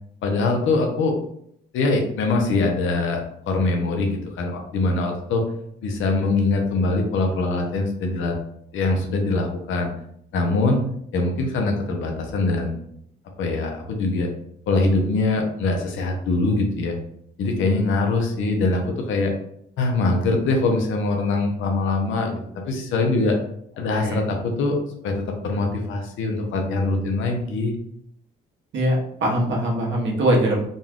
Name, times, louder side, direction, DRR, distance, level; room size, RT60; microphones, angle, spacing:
voice 1, 0.2-1.1 1.7-5.4 5.8-8.3 8.7-9.9 10.3-10.8 11.1-12.8 13.4-14.3 14.7-16.9 17.4-19.3 19.8-23.4 23.8-24.8 25.0-27.7, left 3 dB, 80° left, 2 dB, 0.9 m, -23 dB
voice 2, 28.7-30.6, right 1 dB, 70° right, -1 dB, 1.2 m, -22 dB
3.9 x 2.4 x 3.6 m, 0.70 s
cardioid pair, 90°, 20 cm